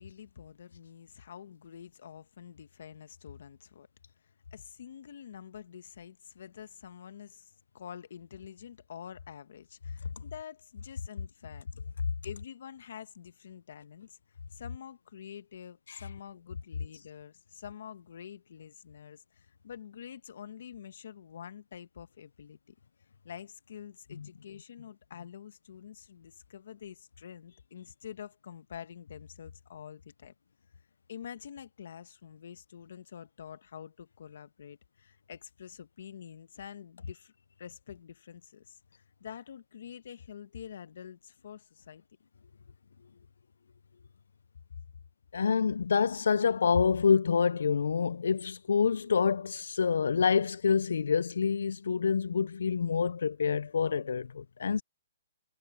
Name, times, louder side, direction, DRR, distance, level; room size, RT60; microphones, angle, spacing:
voice 1, 0.0-3.9 4.5-11.7 12.2-14.2 14.5-22.7 23.2-30.3 31.1-37.3 37.6-38.8 39.2-42.0, left 8 dB, 60° left, 1.4 m, -47 dB
voice 2, 45.3-54.8, left 6 dB, 80° left, 0.3 m, -27 dB
hypercardioid pair, 165°, 0 cm